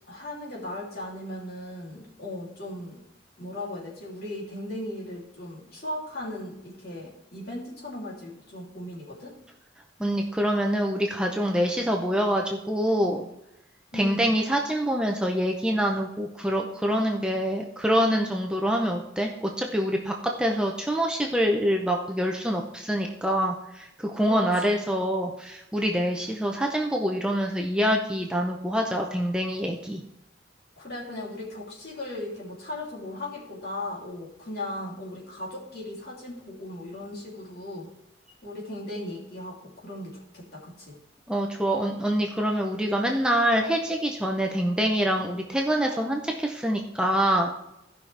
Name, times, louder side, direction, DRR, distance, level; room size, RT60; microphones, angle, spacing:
voice 1, 0.1-3.0 3.4-9.4 13.9-14.3 24.3-24.9 30.8-37.9 38.4-41.0, left 1 dB, 50° left, -4 dB, 2.9 m, -37 dB
voice 2, 10.0-13.3 13.9-30.0 41.3-47.5, equal, 5° right, 1 dB, 0.6 m, -25 dB
15.5 x 5.7 x 3.3 m, 0.86 s
head